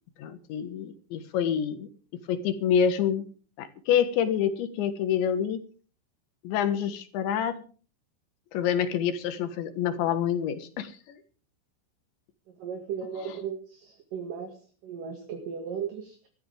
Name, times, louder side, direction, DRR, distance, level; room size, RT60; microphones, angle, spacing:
voice 1, 0.2-3.3 3.6-5.6 6.4-7.6 8.5-11.2, left 8 dB, 70° left, 10 dB, 3.5 m, -27 dB
voice 2, 12.5-16.3, right 7 dB, 55° right, 4 dB, 3.0 m, -36 dB
21.0 x 13.5 x 3.5 m, 0.39 s
omnidirectional pair, 5.9 m